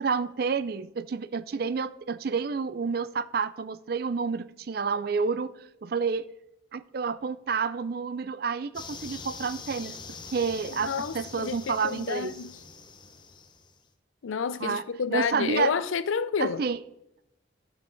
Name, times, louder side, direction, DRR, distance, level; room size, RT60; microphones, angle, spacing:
voice 1, 0.0-5.5 5.8-6.3 6.7-10.0 10.3-12.3 14.6-14.8 15.1-15.7 16.4-16.8, right 5 dB, 50° right, 0.4 m, -29 dB
sound 1, 8.7-13.8, left 5 dB, 25° left, 0.7 m, -44 dB
voice 2, 10.7-12.6 14.2-16.6, left 6 dB, 90° left, 0.4 m, -30 dB
13.0 x 5.7 x 3.9 m
head